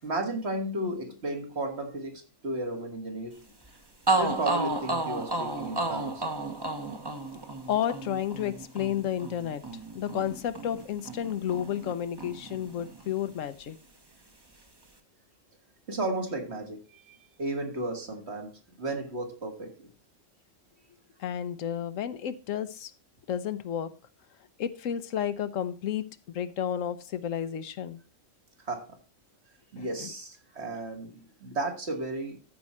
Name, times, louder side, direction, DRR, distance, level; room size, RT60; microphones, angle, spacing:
voice 1, 0.0-3.4 4.1-6.3 15.9-19.9 28.6-29.0 29.7-32.4, right 1 dB, 55° right, 2.0 m, -34 dB
sound 1, 3.6-3.7 4.1-11.9 12.2-13.3, right 3 dB, 20° right, 1.0 m, -32 dB
voice 2, 7.7-9.6 9.9-13.8 21.2-22.9 23.3-23.9 24.6-28.0 29.8-30.1, left 9 dB, 80° left, 1.1 m, -31 dB
13.5 x 4.8 x 4.2 m
omnidirectional pair, 1.3 m